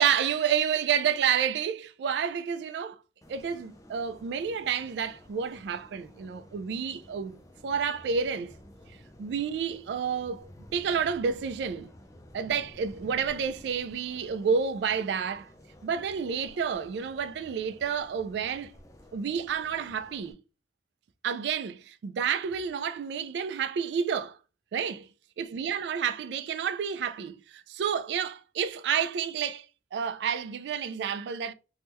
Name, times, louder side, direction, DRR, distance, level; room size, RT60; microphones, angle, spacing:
voice 1, 0.0-3.0 3.3-8.5 9.2-11.9 12.3-15.5 15.8-18.7 19.1-20.4 21.2-24.4 24.7-25.1 25.4-29.7 29.9-31.5, right 7 dB, 75° right, 0.3 m, -30 dB
sound 1, 3.2-20.3, left 1 dB, 20° left, 0.4 m, -53 dB
3.5 x 2.1 x 2.9 m
head